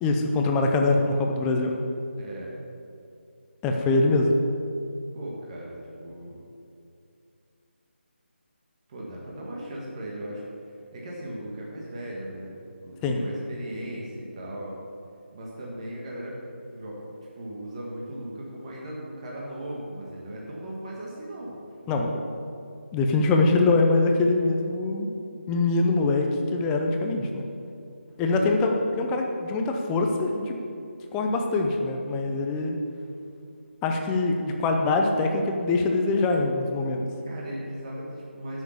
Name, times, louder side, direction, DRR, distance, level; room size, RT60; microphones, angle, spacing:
voice 1, 0.0-1.7 3.6-4.3 13.0-13.2 21.9-22.1 22.9-25.1 25.5-27.4 28.2-30.6 31.1-32.8 33.8-37.1, left 3 dB, 10° left, 2 dB, 0.6 m, -23 dB
voice 2, 2.2-2.5 5.1-6.4 8.9-10.4 10.9-12.5 12.8-14.8 15.3-21.6 21.8-22.1 28.3-28.6 37.3-38.6, right 1 dB, 30° right, -4 dB, 1.7 m, -38 dB
9.7 x 6.5 x 6.9 m, 2.6 s
figure-of-eight pair, 160°, 6 cm